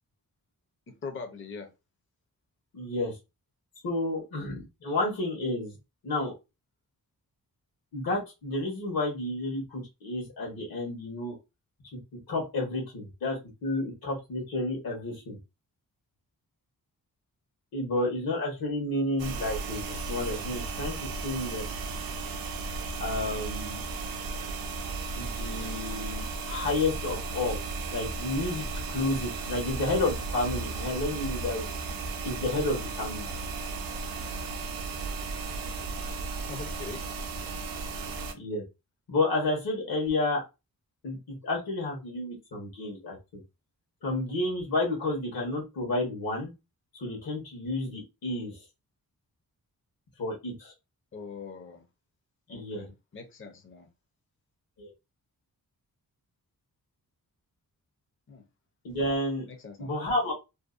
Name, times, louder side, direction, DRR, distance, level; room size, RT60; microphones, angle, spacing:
voice 1, 0.9-1.7 36.5-37.0 51.1-51.9 52.5-53.9 58.3-58.4 59.5-59.9, left 5 dB, 35° left, 0.5 m, -42 dB
voice 2, 2.7-3.1 3.8-5.8 6.0-6.4 7.9-11.4 12.3-15.4 17.7-21.6 23.0-23.8 25.2-27.6 27.9-31.7 32.2-33.3 38.3-38.6 39.1-40.4 41.0-43.4 44.0-46.5 46.9-48.6 50.2-50.7 52.5-52.9 54.8-54.9 58.8-59.5 59.8-60.3, left 2 dB, 75° left, 1.1 m, -31 dB
sound 1, 19.2-38.3, right 3 dB, 70° right, 0.5 m, -35 dB
2.6 x 2.1 x 2.4 m
wide cardioid pair, 140°, 36 cm